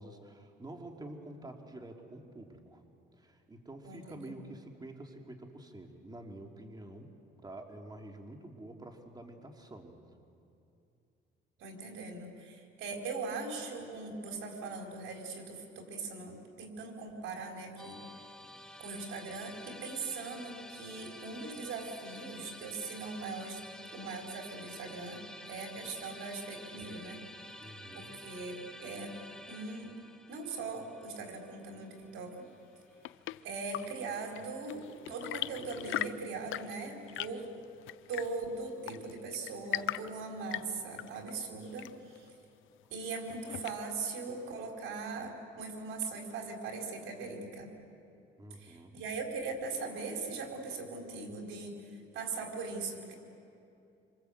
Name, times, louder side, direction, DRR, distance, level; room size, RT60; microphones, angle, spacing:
voice 1, 0.0-2.8 3.1-7.1 7.4-10.0 27.6-28.2 48.4-49.0, right 1 dB, 20° right, 2 dB, 3.2 m, -48 dB
voice 2, 3.8-4.5 11.6-18.0 18.8-23.6 23.9-27.2 27.5-27.6 27.9-29.1 29.5-29.9 30.3-32.5 33.4-37.5 38.1-42.3 42.9-47.7 48.6-53.1, right 3 dB, 85° right, 2 dB, 4.7 m, -40 dB
Musical instrument, 17.8-33.0, left 1 dB, 5° left, 1.7 m, -50 dB
Chirp tweet / Engine / Tap, 32.6-44.1, left 14 dB, 80° left, 0.6 m, -42 dB
27.5 x 26.5 x 8.2 m, 2.6 s
cardioid pair, 90°, 20 cm